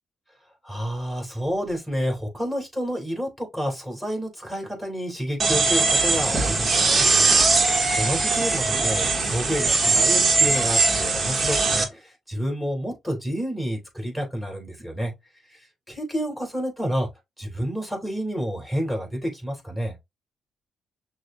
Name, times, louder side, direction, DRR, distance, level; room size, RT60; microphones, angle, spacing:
voice 1, 0.6-7.0 8.0-15.1 15.5-15.6 15.9-17.1 17.4-19.9, equal, ahead, 2.9 m, -29 dB
sound 1, 5.4-11.8, right 3 dB, 40° right, 1.1 m, -20 dB
6.2 x 2.2 x 2.6 m
supercardioid pair, 70°, 0 cm